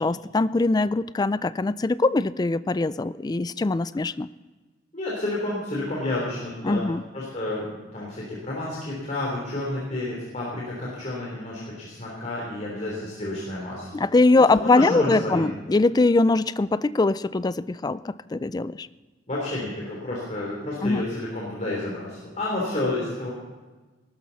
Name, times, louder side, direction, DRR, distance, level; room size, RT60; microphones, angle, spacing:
voice 1, 0.0-4.3 6.6-7.0 14.0-18.9 20.8-21.1, left 3 dB, 20° left, 17 dB, 0.3 m, -22 dB
voice 2, 4.9-6.8 7.1-13.9 14.5-15.5 19.3-23.3, left 2 dB, 35° left, -5 dB, 3.3 m, -30 dB
19.0 x 12.5 x 4.1 m, 1.3 s
head